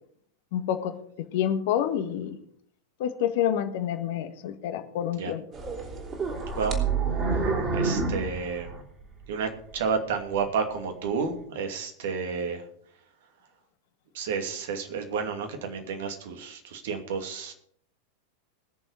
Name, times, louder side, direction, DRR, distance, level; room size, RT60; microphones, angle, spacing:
voice 1, 0.5-0.9 1.3-2.4 3.0-5.4, left 10 dB, 50° left, 9 dB, 1.5 m, -28 dB
sound 1, 5.5-9.3 9.7-9.8 10.5-10.6, right 4 dB, 25° right, 3.5 m, -28 dB
voice 2, 7.7-8.7 9.3-12.6 14.1-17.5, right 5 dB, 55° right, 5 dB, 2.6 m, -31 dB
21.0 x 7.1 x 4.9 m, 0.64 s
figure-of-eight pair, 90°, 0 cm